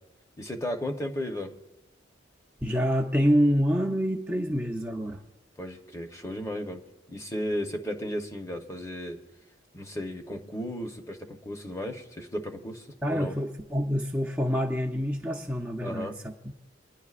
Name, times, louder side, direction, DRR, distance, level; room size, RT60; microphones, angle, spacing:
voice 1, 0.4-1.5 5.6-6.8 7.1-9.2 9.7-13.4 15.8-16.2, equal, 15° left, 5 dB, 0.9 m, -34 dB
voice 2, 2.6-5.2 13.0-16.1, equal, 5° right, 0 dB, 0.6 m, -26 dB
26.0 x 10.0 x 2.5 m, 1.1 s
head